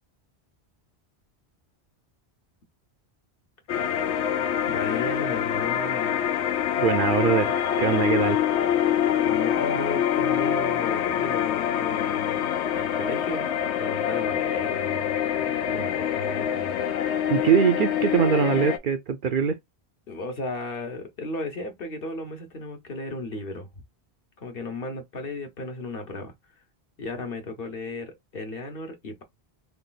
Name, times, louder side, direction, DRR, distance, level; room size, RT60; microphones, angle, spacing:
sound 1, 3.7-18.8, left 10 dB, 90° left, 0.9 m, -25 dB
voice 1, 4.7-6.1 9.2-13.5 13.8-17.2 20.1-23.7 24.4-26.3 27.0-29.2, left 2 dB, 60° left, 1.2 m, -35 dB
voice 2, 6.8-8.4 17.3-19.6, right 7 dB, 60° right, 0.6 m, -22 dB
3.2 x 2.4 x 3.9 m
omnidirectional pair, 1.1 m